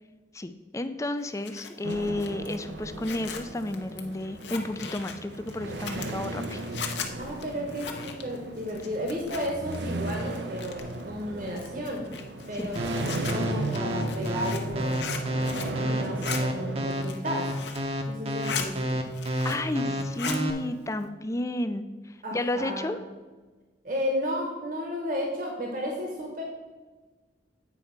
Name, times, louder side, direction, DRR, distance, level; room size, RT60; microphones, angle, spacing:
voice 1, 0.3-6.6 12.5-12.7 19.4-23.0, left 1 dB, 15° left, 10 dB, 0.4 m, -32 dB
Zipper (clothing), 1.2-9.8 10.0-11.0 11.5-16.4 16.9-17.9 18.2-18.7 19.0-19.8 20.0-20.4, left 6 dB, 85° left, 0.9 m, -38 dB
sound 1, 1.8-16.9, right 2 dB, 85° right, 0.7 m, -36 dB
voice 2, 7.2-12.1 12.5-15.1 15.7-17.5 18.1-19.0 22.2-23.0 23.8-26.4, equal, 50° right, 0 dB, 1.2 m, -33 dB
sound 2, 12.8-20.5, equal, 35° right, 0.8 m, -29 dB
8.4 x 4.4 x 5.7 m, 1.3 s
head